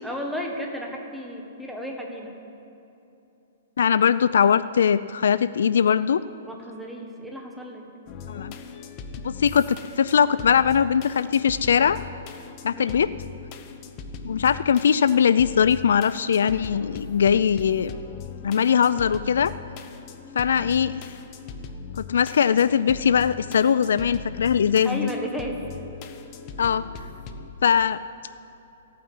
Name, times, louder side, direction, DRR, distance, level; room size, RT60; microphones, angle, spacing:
voice 1, 0.0-2.3 6.5-7.9 12.7-13.2 24.8-25.7, equal, ahead, 0 dB, 1.4 m, -33 dB
voice 2, 3.8-6.2 8.3-8.5 9.2-12.0 12.6-13.1 14.2-17.9 18.4-19.5 20.4-21.0 22.0-25.1 26.6-26.8 27.6-28.0, left 7 dB, 80° left, 14 dB, 0.4 m, -21 dB
sound 1, 8.1-27.5, left 5 dB, 30° left, 0.9 m, -40 dB
14.0 x 9.2 x 9.6 m, 2.9 s
hypercardioid pair, 165°, 0 cm